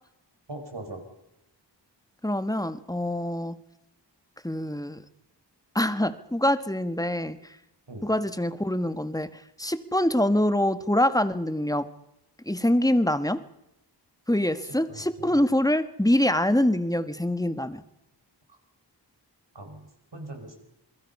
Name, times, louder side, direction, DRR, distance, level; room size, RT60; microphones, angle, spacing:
voice 1, 0.5-1.0 7.9-8.1 14.6-15.4 19.6-20.6, right 2 dB, 75° right, 4 dB, 5.2 m, -41 dB
voice 2, 2.2-3.6 4.4-5.0 5.7-7.4 8.0-11.9 12.4-13.4 14.3-17.8, left 1 dB, 10° left, 11 dB, 1.5 m, -25 dB
27.5 x 21.5 x 5.5 m, 0.87 s
wide cardioid pair, 50°, 43 cm